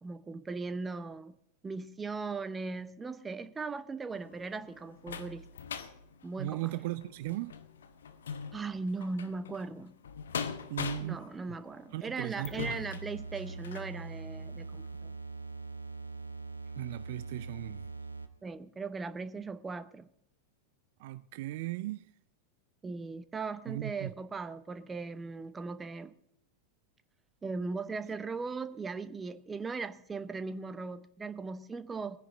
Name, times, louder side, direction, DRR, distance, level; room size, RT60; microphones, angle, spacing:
voice 1, 0.0-1.3 1.6-5.4 6.2-6.7 8.5-10.0 11.0-15.1 18.4-20.1 22.8-26.1 27.4-32.2, right 4 dB, 15° right, 0.8 m, -38 dB
sound 1, 4.1-13.9 14.5-14.6 15.0-15.1, left 6 dB, 65° left, 0.9 m, -42 dB
voice 2, 6.4-7.6 10.7-11.3 11.9-12.7 16.8-17.9 21.0-22.1 23.7-24.1, right 16 dB, 50° right, 0.4 m, -37 dB
sound 2, 12.6-18.5, right 3 dB, 85° right, 0.8 m, -42 dB
20.5 x 10.0 x 3.7 m
figure-of-eight pair, 90°, 0 cm